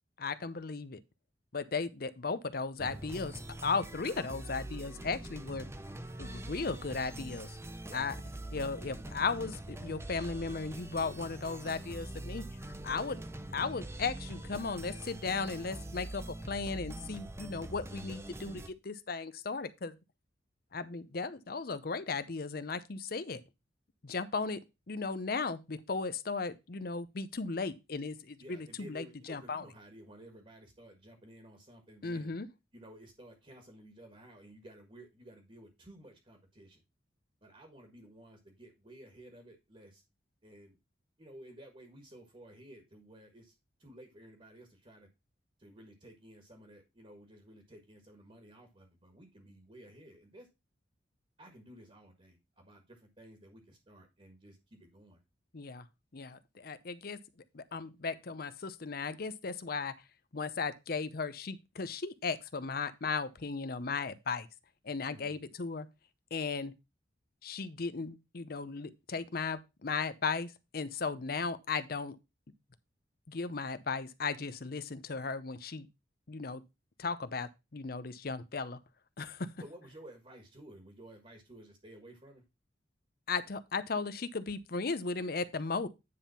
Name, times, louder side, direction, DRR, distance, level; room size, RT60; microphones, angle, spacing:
voice 1, 0.2-1.0 1.5-5.7 6.2-7.6 7.9-8.1 8.5-13.2 13.5-19.9 20.7-23.4 24.0-29.6 32.0-32.5 55.5-55.9 56.1-57.2 57.5-59.9 60.3-64.5 64.8-65.9 66.3-66.7 67.4-72.2 73.3-75.9 76.3-76.6 77.0-78.8 79.2-79.5 83.3-85.9, left 4 dB, 55° left, 0.7 m, -36 dB
sound 1, 2.8-18.7, right 1 dB, 15° right, 0.7 m, -44 dB
voice 2, 28.4-32.3 32.7-36.8 37.4-40.0 40.4-40.8 41.2-43.5 43.8-45.1 45.6-50.5 51.4-55.2 65.1-65.4 79.6-82.4, right 1 dB, 30° right, 1.6 m, -54 dB
9.7 x 3.6 x 5.6 m
head